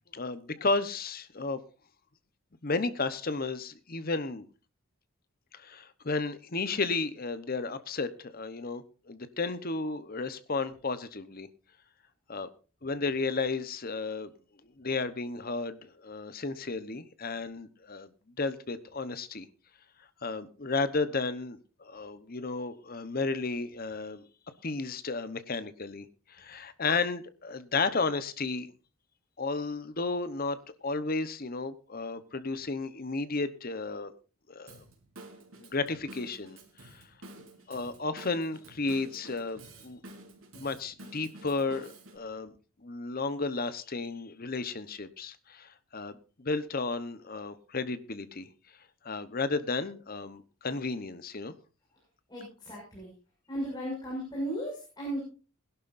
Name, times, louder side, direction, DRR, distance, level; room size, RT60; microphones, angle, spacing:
voice 1, 0.1-1.6 2.6-4.5 5.5-11.5 12.3-12.5 12.8-14.3 14.8-18.1 18.4-19.5 20.2-24.2 24.6-28.7 29.4-30.6 30.8-34.1 34.5-34.8 35.6-37.0 37.4-40.0 40.5-42.5 42.8-48.5 49.0-51.5, left 3 dB, 45° left, 13 dB, 1.0 m, -33 dB
Drum kit / Drum, 34.7-42.2, right 2 dB, 75° right, 3.8 m, -50 dB
voice 2, 52.3-53.1 53.5-55.3, right 1 dB, 20° left, -4 dB, 6.4 m, -35 dB
20.5 x 11.5 x 2.6 m, 0.35 s
head